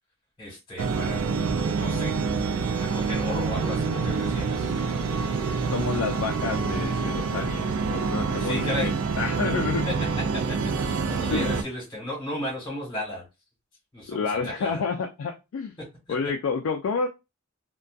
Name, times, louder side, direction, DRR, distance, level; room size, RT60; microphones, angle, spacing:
voice 1, 0.4-2.2 2.8-5.7 8.4-8.9 9.9-10.0 10.8-13.2 13.9-14.8, left 1 dB, 20° left, 1.3 m, -35 dB
sound 1, 0.8-11.6, right 4 dB, 85° right, 0.4 m, -27 dB
voice 2, 5.7-8.9 9.2-9.9 11.3-11.5 14.1-15.7 16.1-17.1, left 5 dB, 70° left, 0.3 m, -29 dB
2.6 x 2.2 x 2.3 m
head